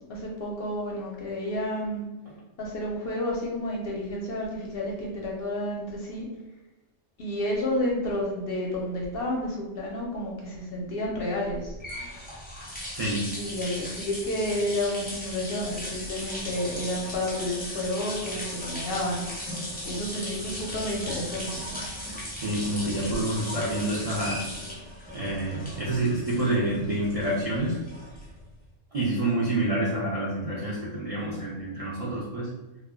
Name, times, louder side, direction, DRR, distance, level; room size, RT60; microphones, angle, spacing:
voice 1, 0.1-2.1 2.6-6.3 7.2-11.7 13.3-19.2 19.9-21.5, left 1 dB, 60° left, -2 dB, 0.6 m, -30 dB
sound 1, 11.5-28.5, equal, 15° left, 0.4 m, -37 dB
voice 2, 12.9-13.2 22.1-24.4 25.1-27.8 28.9-32.5, right 1 dB, 60° right, -6 dB, 0.3 m, -28 dB
2.1 x 2.1 x 3.5 m, 1.1 s
omnidirectional pair, 1.3 m